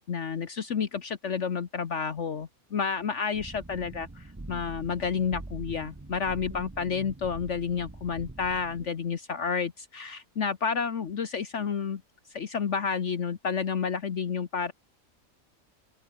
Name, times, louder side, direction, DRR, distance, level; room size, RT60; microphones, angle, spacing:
voice 1, 0.1-12.0 12.3-14.7, left 6 dB, 55° left, 1.4 m, -30 dB
sound 1, 3.3-8.9, right 2 dB, 15° right, 0.8 m, -43 dB
open air
omnidirectional pair, 1.5 m